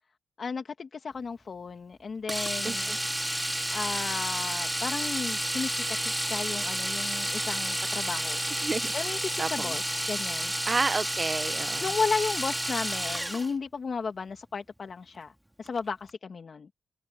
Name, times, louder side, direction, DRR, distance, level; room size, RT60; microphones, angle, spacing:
voice 1, 0.4-3.0 3.7-8.4 8.9-10.5 11.8-15.3 15.6-16.7, left 5 dB, 55° left, 1.7 m, -34 dB
Domestic sounds home sounds, 2.3-13.5 15.7-15.8 16.1-16.2, right 1 dB, 5° right, 2.7 m, -31 dB
voice 2, 2.6-3.0 8.5-8.9 9.4-9.8 10.7-11.9, right 4 dB, 40° right, 0.6 m, -30 dB
cardioid pair, 80°, 0 cm